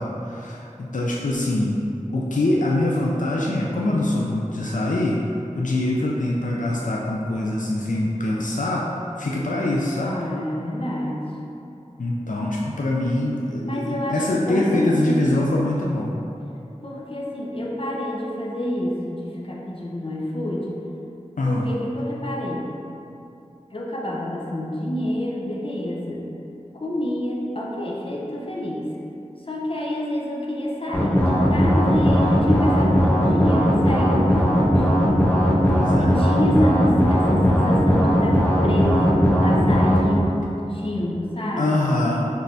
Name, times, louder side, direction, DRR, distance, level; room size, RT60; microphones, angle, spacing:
voice 1, 0.0-1.8 2.1-5.2 5.5-10.1 12.0-16.2 21.4-21.6 35.7-36.1 41.6-42.3, left 1 dB, 80° left, -3 dB, 0.4 m, -24 dB
voice 2, 10.0-11.3 13.6-15.3 16.8-20.8 21.4-22.7 23.7-26.2 26.7-28.9 29.4-34.9 35.9-42.0, left 1 dB, 45° left, -3 dB, 0.7 m, -27 dB
sound 1, 30.9-40.0, equal, 15° left, 0.9 m, -18 dB
6.1 x 3.2 x 2.7 m, 2.8 s
wide cardioid pair, 45°, 13 cm